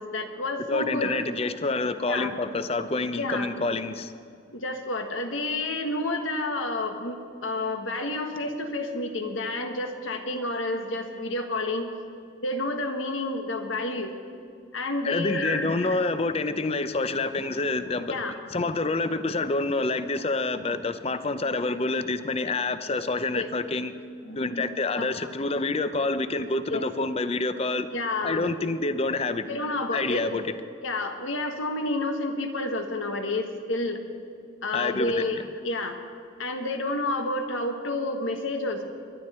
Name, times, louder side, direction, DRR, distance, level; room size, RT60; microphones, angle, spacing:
voice 1, 0.0-1.3 2.1-2.3 3.1-3.5 4.5-11.9 12.4-14.2 14.7-16.0 18.1-18.4 23.3-23.5 24.2-24.6 25.0-25.1 26.7-26.8 27.9-28.4 29.4-30.2 30.8-34.0 34.6-36.0 36.4-38.8, left 2 dB, 90° left, 5 dB, 1.5 m, -30 dB
voice 2, 0.7-4.1 15.0-18.2 18.5-23.9 24.4-27.9 28.2-29.5 29.9-30.5 34.7-35.2, left 3 dB, 30° left, 12 dB, 0.6 m, -27 dB
22.5 x 11.5 x 4.3 m, 2.4 s
head